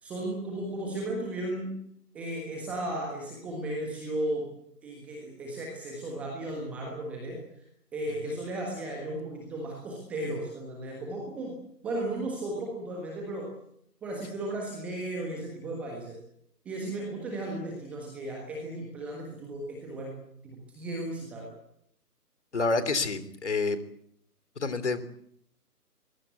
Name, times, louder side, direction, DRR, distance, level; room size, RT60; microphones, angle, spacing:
voice 1, 0.0-1.8 2.1-4.5 4.8-7.4 7.9-11.5 11.8-13.5 14.0-16.2 16.6-20.1 20.4-21.5, right 1 dB, 5° right, 0 dB, 1.4 m, -35 dB
voice 2, 22.5-23.8 24.6-25.1, left 3 dB, 45° left, 13 dB, 3.4 m, -28 dB
23.5 x 21.5 x 8.3 m, 0.72 s
figure-of-eight pair, 150°, 48 cm